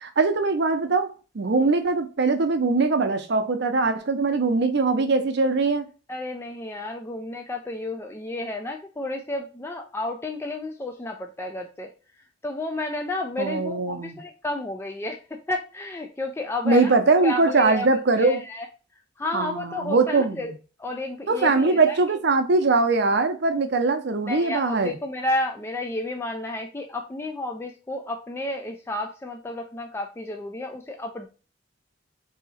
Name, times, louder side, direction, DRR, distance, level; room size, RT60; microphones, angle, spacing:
voice 1, 0.0-1.1 1.3-5.9 13.4-14.2 16.6-18.4 19.3-20.5 21.3-25.0, right 3 dB, 60° right, 0.6 m, -21 dB
voice 2, 6.1-11.9 12.4-17.0 17.2-17.9 18.2-18.7 19.2-20.5 20.8-22.0 24.3-31.3, left 2 dB, 15° left, 0.3 m, -31 dB
3.6 x 2.8 x 4.1 m
head